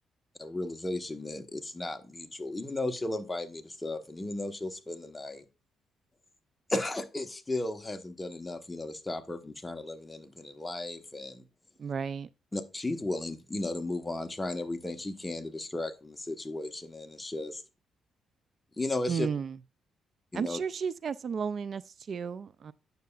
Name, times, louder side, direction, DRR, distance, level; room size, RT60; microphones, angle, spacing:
voice 1, 0.4-5.4 6.7-11.4 12.5-17.6 18.8-19.3 20.3-20.6, left 2 dB, 15° left, 1.1 m, -35 dB
voice 2, 11.8-12.3 19.1-19.6 20.3-22.7, right 6 dB, 50° right, 0.4 m, -33 dB
9.3 x 6.7 x 2.4 m
cardioid pair, 90°, 0 cm